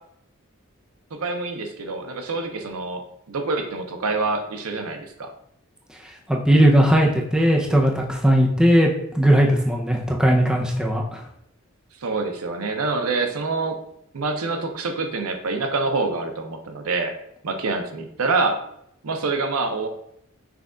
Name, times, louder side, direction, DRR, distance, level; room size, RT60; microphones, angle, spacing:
voice 1, 1.1-5.3 12.0-13.8 14.1-17.1 17.4-18.6 19.0-19.9, right 3 dB, 85° right, 5 dB, 0.7 m, -26 dB
voice 2, 6.3-8.9 9.2-11.2, equal, 5° right, -1 dB, 0.5 m, -18 dB
5.9 x 2.3 x 3.7 m, 0.75 s
head